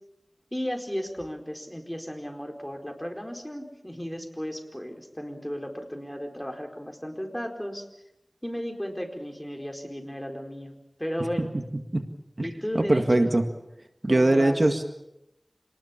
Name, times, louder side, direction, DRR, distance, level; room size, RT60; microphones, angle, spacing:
voice 1, 0.5-7.9 8.4-10.7 11.0-11.5 12.4-13.3 14.1-14.6, equal, 10° left, 3 dB, 4.6 m, -34 dB
voice 2, 12.4-13.4 14.0-14.8, right 2 dB, 55° right, 6 dB, 1.9 m, -22 dB
26.5 x 20.0 x 7.3 m, 0.87 s
wide cardioid pair, 45°, 0 cm